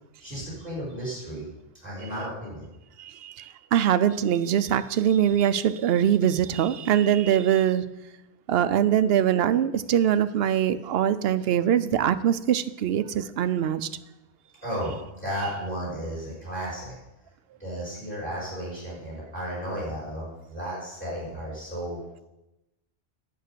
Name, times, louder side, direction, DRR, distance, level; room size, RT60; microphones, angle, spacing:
voice 1, 0.2-1.5 1.8-2.7 14.6-16.9 17.6-22.0, equal, 10° left, -6 dB, 4.5 m, -34 dB
voice 2, 3.0-7.8 8.5-13.9, right 10 dB, 70° right, 13 dB, 0.8 m, -23 dB
8.9 x 7.5 x 6.7 m, 0.96 s
omnidirectional pair, 1.1 m